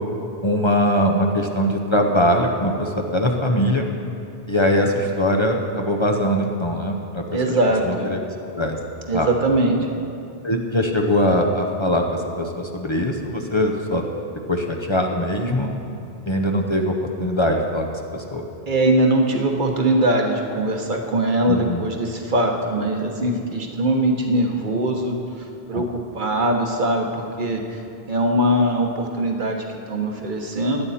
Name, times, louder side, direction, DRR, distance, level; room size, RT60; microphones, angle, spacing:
voice 1, 0.4-3.9 4.5-7.2 7.9-8.2 8.5-8.8 9.1-9.3 10.4-14.0 14.5-15.7 16.3-17.9 18.1-18.4 21.5-21.9 25.7-25.8, equal, 30° left, 1 dB, 0.8 m, -21 dB
voice 2, 7.3-8.1 9.1-9.9 18.7-25.9 26.1-27.1 27.4-27.8 28.1-30.9, right 1 dB, 50° right, 2 dB, 1.4 m, -21 dB
16.5 x 10.5 x 4.3 m, 2.7 s
omnidirectional pair, 1.0 m